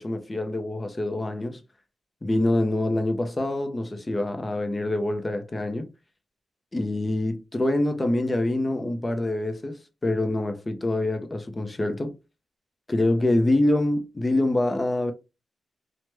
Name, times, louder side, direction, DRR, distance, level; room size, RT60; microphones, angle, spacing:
voice 1, 0.0-1.6 2.2-5.9 6.7-12.1 12.9-15.1, left 1 dB, 20° left, 0.5 m, -25 dB
2.9 x 2.0 x 3.2 m
wide cardioid pair, 145°, 0 cm